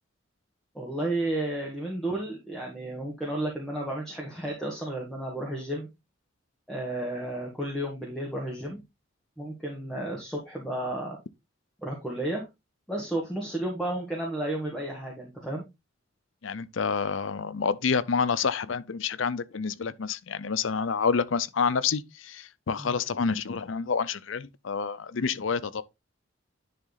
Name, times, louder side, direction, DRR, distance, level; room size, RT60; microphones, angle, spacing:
voice 1, 0.7-5.9 6.7-8.8 9.4-11.2 11.8-12.4 12.9-15.6 22.8-23.0, right 1 dB, 5° left, 1.7 m, -32 dB
voice 2, 16.4-25.8, left 5 dB, 80° left, 0.6 m, -28 dB
10.0 x 3.7 x 4.0 m
head